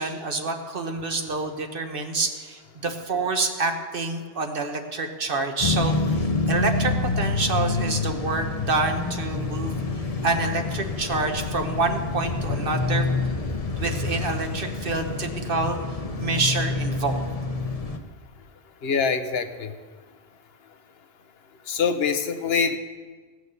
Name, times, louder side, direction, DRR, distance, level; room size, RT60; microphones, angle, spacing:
voice 1, 0.0-5.9 6.5-9.8 10.2-13.0 13.8-15.8 16.2-17.2, right 3 dB, 55° right, 5 dB, 1.2 m, -27 dB
sound 1, 5.6-18.0, left 3 dB, 35° left, 0.8 m, -27 dB
voice 2, 18.8-19.7 21.7-22.8, left 6 dB, 65° left, 9 dB, 1.0 m, -24 dB
16.5 x 6.4 x 6.8 m, 1.5 s
omnidirectional pair, 1.1 m